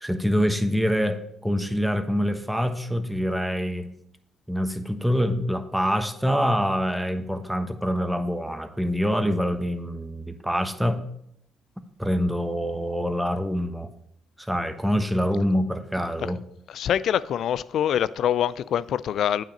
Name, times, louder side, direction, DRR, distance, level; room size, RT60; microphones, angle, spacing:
voice 1, 0.0-3.9 4.5-11.0 12.0-13.9 14.4-16.4, equal, 5° right, 1.2 m, -25 dB
voice 2, 16.7-19.4, left 10 dB, 65° left, 0.3 m, -24 dB
8.7 x 5.9 x 5.2 m
hypercardioid pair, 50°, 0 cm